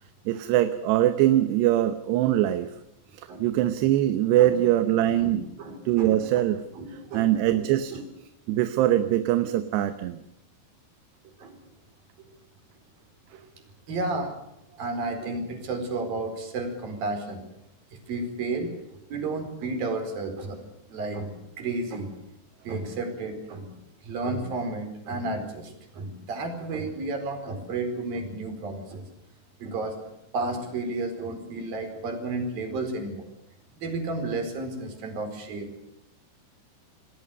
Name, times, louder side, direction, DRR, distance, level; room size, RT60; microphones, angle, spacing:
voice 1, 0.3-2.7 3.1-5.4 5.9-6.6 7.1-8.0 8.5-10.2, right 13 dB, 75° right, 10 dB, 2.9 m, -22 dB
voice 2, 5.2-6.3 6.8-7.6 7.9-8.0 11.4-11.6 13.9-14.3 14.8-17.4 18.1-20.6 20.9-22.1 22.6-23.7 24.0-29.1 29.6-30.0 30.3-33.3 33.8-35.7, right 2 dB, 50° right, 6 dB, 6.1 m, -32 dB
28.0 x 20.0 x 6.7 m, 0.83 s
omnidirectional pair, 5.3 m